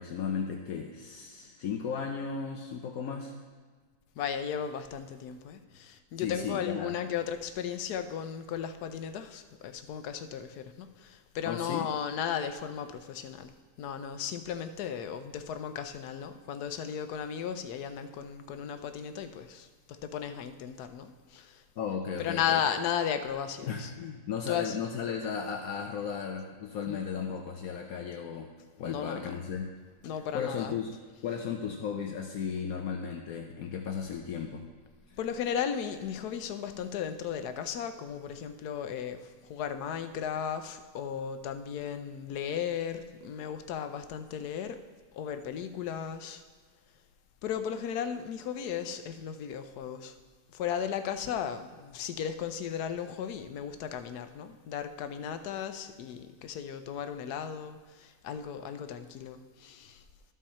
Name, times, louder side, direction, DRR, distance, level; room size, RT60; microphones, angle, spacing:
voice 1, 0.0-3.4 6.2-6.9 11.4-11.9 21.8-22.6 23.6-28.5 28.8-29.7 30.3-30.9 31.2-34.7 35.1-35.2, left 6 dB, 70° left, 3 dB, 1.1 m, -35 dB
voice 2, 4.2-13.5 13.8-21.6 22.2-23.9 24.5-24.8 26.9-27.0 28.8-29.4 30.0-30.7 35.2-44.8 45.1-46.4 47.4-50.2 50.5-60.0, left 8 dB, 90° left, 9 dB, 1.2 m, -35 dB
13.0 x 5.5 x 4.3 m, 1.5 s
omnidirectional pair, 1.6 m